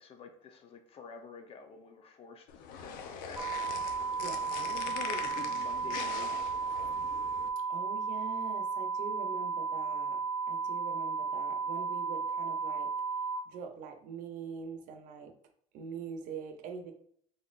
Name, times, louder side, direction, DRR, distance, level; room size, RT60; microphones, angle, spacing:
voice 1, 0.0-2.5 2.8-3.5 4.6-6.6, left 5 dB, 40° left, 5 dB, 0.7 m, -48 dB
sound 1, 2.5-7.5, left 6 dB, 80° left, 0.6 m, -42 dB
sound 2, 3.4-13.4, right 5 dB, 25° right, 0.8 m, -34 dB
voice 2, 7.7-12.9 13.5-15.3 15.7-16.9, right 6 dB, 65° right, 5 dB, 0.7 m, -43 dB
4.2 x 3.9 x 2.5 m, 0.63 s
cardioid pair, 125°, 14 cm